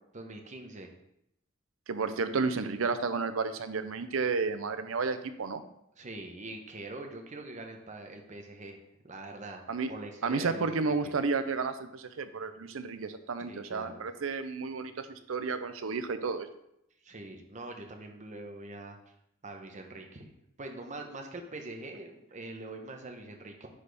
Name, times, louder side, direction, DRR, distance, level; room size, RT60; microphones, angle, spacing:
voice 1, 0.1-0.9 6.0-8.8 9.0-10.9 13.5-14.1 17.0-19.0 19.4-20.3 20.6-23.7, right 2 dB, 35° right, 3 dB, 1.0 m, -43 dB
voice 2, 1.9-5.6 9.7-9.9 10.2-16.5, right 4 dB, 90° right, 10 dB, 0.6 m, -32 dB
9.8 x 4.2 x 3.4 m, 0.79 s
head